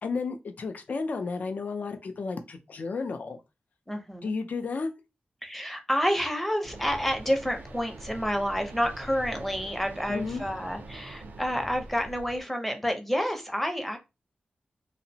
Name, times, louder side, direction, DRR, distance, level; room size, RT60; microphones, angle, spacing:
voice 1, 0.0-3.4 4.2-4.9 10.1-10.4, left 4 dB, 60° left, 0.4 m, -32 dB
voice 2, 3.9-4.4 5.4-14.0, equal, 5° left, 0.6 m, -29 dB
sound 1, 6.6-12.4, right 2 dB, 85° right, 0.4 m, -44 dB
2.8 x 2.0 x 2.6 m
wide cardioid pair, 115°, 3 cm